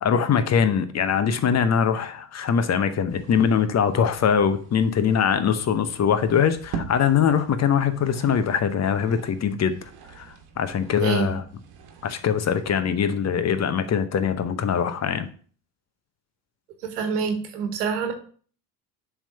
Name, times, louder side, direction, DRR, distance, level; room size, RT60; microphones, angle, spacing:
voice 1, 0.0-9.8 10.2-11.4 12.0-15.3, left 7 dB, 35° left, 0.8 m, -22 dB
sound 1, 3.1-12.8, right 5 dB, 55° right, 1.4 m, -43 dB
voice 2, 10.9-11.4 16.8-18.1, right 6 dB, 85° right, 1.4 m, -26 dB
7.2 x 3.6 x 5.4 m
hypercardioid pair, 65°, 45 cm